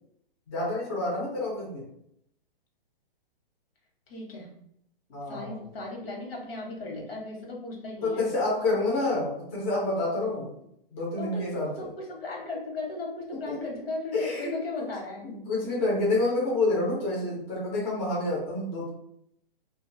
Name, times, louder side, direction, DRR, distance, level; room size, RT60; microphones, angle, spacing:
voice 1, 0.5-1.8 5.1-5.6 8.0-10.5 10.9-11.9 13.5-13.6 14.1-14.9 15.2-18.9, left 2 dB, 15° left, -5 dB, 0.4 m, -28 dB
voice 2, 4.1-4.5 5.3-8.3 11.2-15.3, left 2 dB, 80° left, -1 dB, 1.0 m, -36 dB
2.4 x 2.2 x 2.5 m, 0.73 s
hypercardioid pair, 160°, 29 cm